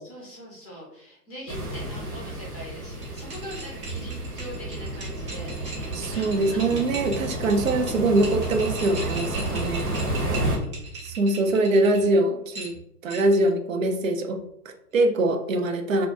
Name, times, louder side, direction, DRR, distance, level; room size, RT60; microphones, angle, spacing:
voice 1, 0.0-6.7, equal, 15° left, -4 dB, 0.5 m, -42 dB
sound 1, 1.5-10.6, right 1 dB, 80° right, 1.1 m, -31 dB
sound 2, 2.9-12.1 12.5-13.5, right 4 dB, 15° right, 0.8 m, -38 dB
voice 2, 5.9-10.0 11.0-12.7 13.0-16.1, right 2 dB, 60° right, 5 dB, 0.6 m, -23 dB
2.6 x 2.2 x 3.5 m, 0.79 s
figure-of-eight pair, 115°, 45 cm